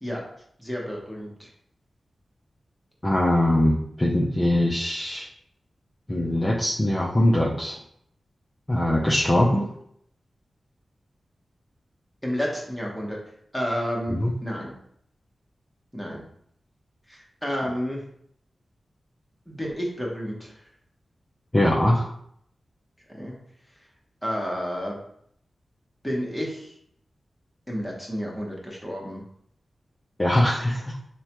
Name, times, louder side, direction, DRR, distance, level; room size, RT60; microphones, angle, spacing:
voice 1, 0.6-1.5 12.2-13.2 13.5-14.7 15.9-16.2 17.1-18.0 19.5-20.5 23.1-23.3 24.2-25.0 26.0-26.7 27.7-29.2, equal, 5° left, -3 dB, 0.8 m, -30 dB
voice 2, 3.0-5.3 6.1-7.8 8.7-9.7 14.1-14.3 21.5-22.1 30.2-30.9, left 1 dB, 20° left, -4 dB, 0.4 m, -22 dB
4.6 x 2.1 x 2.9 m, 0.69 s
wide cardioid pair, 135°, 0 cm